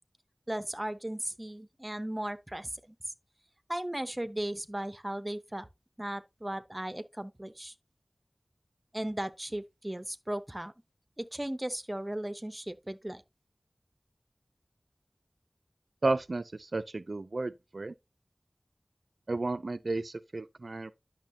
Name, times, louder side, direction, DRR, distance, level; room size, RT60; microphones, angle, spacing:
voice 1, 0.5-2.8 3.7-5.7 6.0-7.7 8.9-10.7 11.2-13.2, right 1 dB, 20° right, 0.8 m, -36 dB
voice 2, 16.0-17.9 19.3-20.9, right 2 dB, 75° right, 0.3 m, -32 dB
10.5 x 6.3 x 2.7 m
wide cardioid pair, 50°, 0 cm